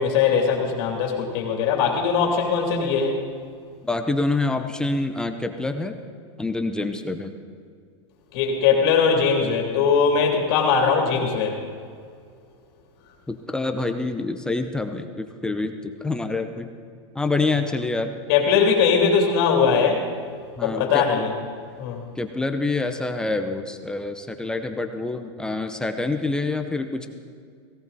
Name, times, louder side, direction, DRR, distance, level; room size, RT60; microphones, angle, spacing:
voice 1, 0.0-3.2 8.3-11.5 18.3-20.1 20.6-21.3 21.8-22.0, left 6 dB, 45° left, 0 dB, 2.8 m, -20 dB
voice 2, 3.8-6.0 6.4-7.3 13.3-16.7 17.1-18.2 20.6-21.2 22.2-27.1, left 3 dB, 5° left, 6 dB, 0.6 m, -26 dB
17.5 x 17.0 x 4.1 m, 2.1 s
supercardioid pair, 160°, 15 cm